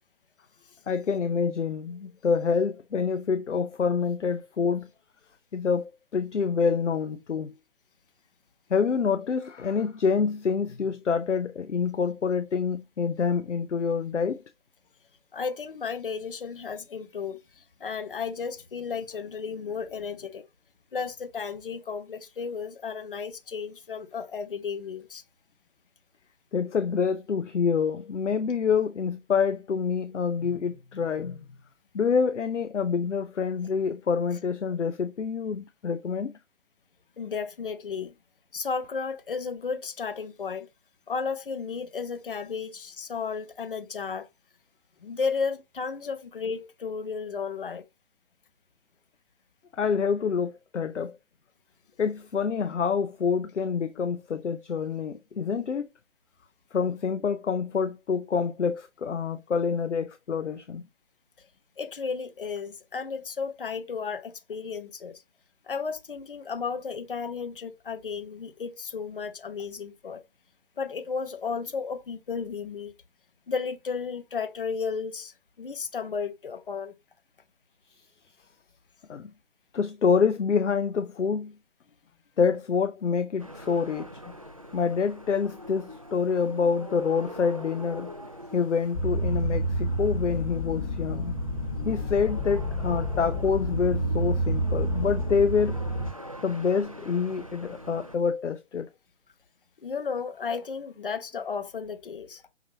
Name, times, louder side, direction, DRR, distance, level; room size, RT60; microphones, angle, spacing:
voice 1, 0.9-4.9 5.5-7.5 8.7-14.4 26.5-31.5 31.9-36.3 49.7-51.1 52.0-55.9 56.7-60.8 79.1-79.3 79.7-81.5 82.4-84.3 84.7-88.1 88.5-91.4 91.8-95.8 96.4-98.9, left 6 dB, 75° left, 0.6 m, -27 dB
voice 2, 15.3-20.5 20.9-25.2 37.2-38.1 38.5-40.7 41.1-44.3 45.0-47.8 61.8-65.2 65.6-70.2 70.8-72.9 73.5-76.9 99.8-102.4, left 5 dB, 45° left, 1.0 m, -33 dB
sound 1, 83.4-98.2, equal, 30° right, 0.4 m, -44 dB
sound 2, 88.9-96.1, equal, 25° left, 1.3 m, -29 dB
5.8 x 2.9 x 2.8 m
figure-of-eight pair, 145°, 36 cm